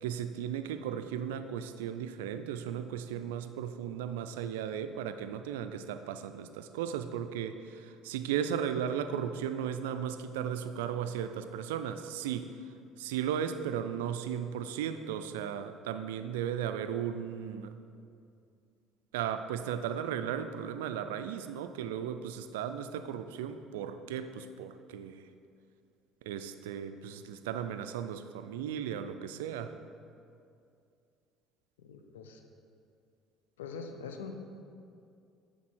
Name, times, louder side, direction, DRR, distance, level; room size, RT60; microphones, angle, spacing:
voice 1, 0.0-12.5 13.0-17.7 19.1-25.3 26.2-29.7, right 9 dB, 80° right, 9 dB, 0.3 m, -36 dB
voice 2, 31.8-32.4 33.6-34.3, left 5 dB, 85° left, 5 dB, 0.5 m, -43 dB
8.3 x 4.1 x 4.5 m, 2.4 s
hypercardioid pair, 65°, 0 cm